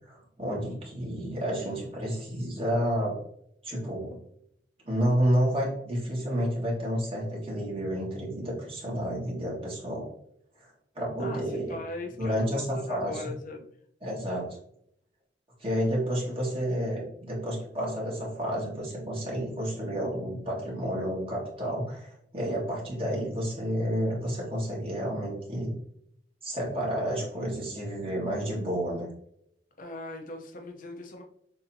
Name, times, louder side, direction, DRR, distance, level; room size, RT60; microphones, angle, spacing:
voice 1, 0.1-3.2 3.6-4.2 4.9-10.1 11.0-11.8 12.2-13.3 14.0-14.6 15.6-25.8 26.4-29.1, equal, 30° right, -4 dB, 1.7 m, -30 dB
voice 2, 11.2-13.7 29.8-31.2, left 2 dB, 50° left, 2 dB, 0.7 m, -40 dB
6.6 x 2.8 x 2.7 m, 0.71 s
head